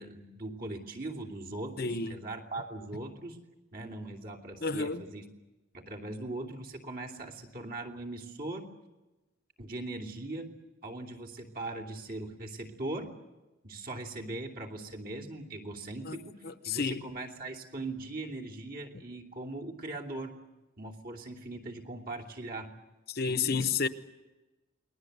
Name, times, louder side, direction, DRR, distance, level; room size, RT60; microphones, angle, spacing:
voice 1, 0.0-3.4 3.7-5.3 5.7-8.7 9.6-10.5 10.8-13.1 13.6-16.4 16.6-20.3 20.8-22.7 23.3-23.8, right 2 dB, 45° right, 3.0 m, -40 dB
voice 2, 1.8-2.2 4.6-5.0 16.1-16.2 16.4-17.0 23.1-23.9, left 5 dB, 50° left, 1.0 m, -31 dB
29.0 x 21.0 x 8.1 m
head